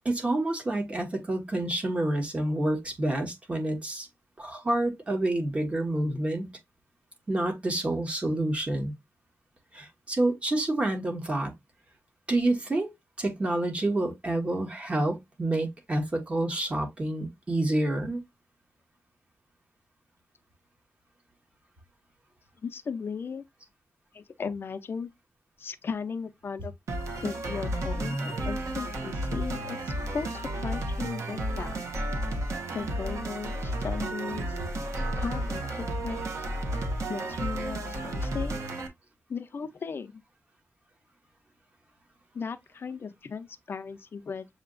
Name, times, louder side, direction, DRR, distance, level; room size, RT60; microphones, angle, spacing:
voice 1, 0.0-4.1 4.4-6.5 7.3-8.9 9.7-11.5 12.3-12.9 13.2-18.2, right 1 dB, 25° right, 1.2 m, -28 dB
voice 2, 22.6-23.4 24.1-25.1 25.6-26.7 27.2-31.8 32.7-34.6 35.2-36.5 37.1-38.6 39.3-40.2 42.3-44.5, left 5 dB, 50° left, 0.5 m, -36 dB
sound 1, 26.9-38.9, right 1 dB, 80° right, 1.1 m, -32 dB
6.7 x 2.8 x 2.4 m
wide cardioid pair, 165°, 5 cm